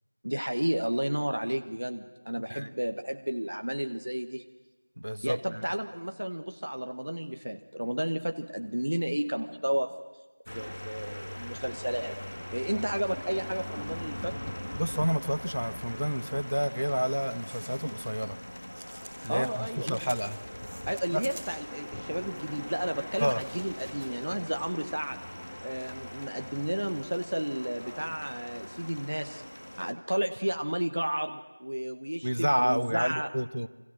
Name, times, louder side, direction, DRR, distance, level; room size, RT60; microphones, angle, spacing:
voice 1, 0.2-4.4 5.2-9.9 10.5-12.2 12.5-14.3 19.3-20.1 20.9-25.2 25.6-29.4 29.8-33.3, equal, 35° right, 7 dB, 1.0 m, -32 dB
voice 2, 5.0-5.6 14.8-18.4 19.2-20.4 21.1-21.2 23.2-23.4 32.2-33.7, equal, 60° right, 13 dB, 1.3 m, -29 dB
sound 1, 10.5-29.9, equal, 30° left, 1.5 m, -41 dB
sound 2, 17.3-18.2 18.5-24.1, right 1 dB, 5° right, 1.7 m, -48 dB
28.5 x 25.5 x 7.7 m, 1.2 s
figure-of-eight pair, 180°, 0 cm